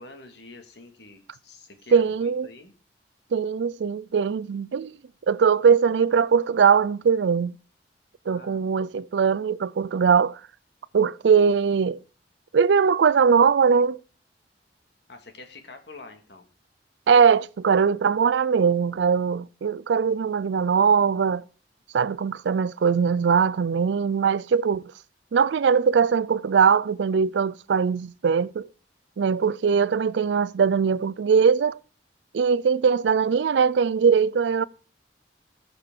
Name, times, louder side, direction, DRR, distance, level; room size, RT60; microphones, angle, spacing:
voice 1, 0.0-2.7 8.2-8.6 15.1-16.5, left 3 dB, 70° left, 1.9 m, -46 dB
voice 2, 1.9-2.5 3.3-4.9 5.3-7.6 8.3-10.4 10.9-12.0 12.5-14.0 17.1-21.4 21.9-24.8 25.3-28.7 29.2-31.7 32.3-34.6, right 6 dB, 80° right, 0.4 m, -21 dB
19.5 x 6.6 x 3.7 m
head